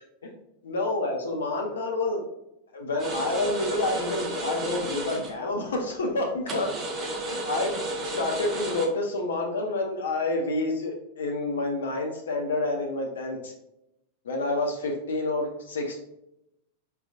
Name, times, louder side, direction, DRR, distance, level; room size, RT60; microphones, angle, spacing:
voice 1, 0.6-2.2 2.7-6.7 7.0-7.8 8.2-13.5 14.2-16.0, left 2 dB, 65° left, 1 dB, 0.6 m, -28 dB
sound 1, 3.0-5.4 6.5-8.9, right 1 dB, 25° right, 0.8 m, -32 dB
4.6 x 3.3 x 2.4 m, 0.84 s
figure-of-eight pair, 90°, 0 cm